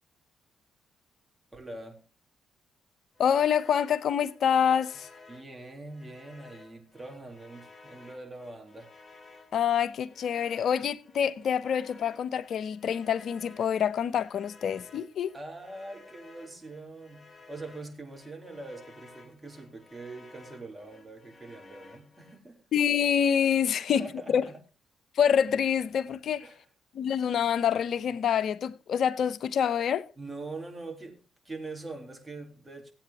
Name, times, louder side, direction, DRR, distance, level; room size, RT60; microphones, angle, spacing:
voice 1, 1.5-2.0 5.3-8.9 15.3-22.6 23.7-24.6 26.4-26.7 30.2-32.9, right 2 dB, 25° right, 3.8 m, -43 dB
voice 2, 3.2-5.1 9.5-15.3 22.7-24.4 25.2-26.5 26.9-30.1, left 8 dB, 65° left, 0.7 m, -26 dB
sound 1, 3.2-22.4, left 3 dB, 25° left, 2.6 m, -54 dB
17.5 x 8.6 x 3.0 m
hypercardioid pair, 50°, 0 cm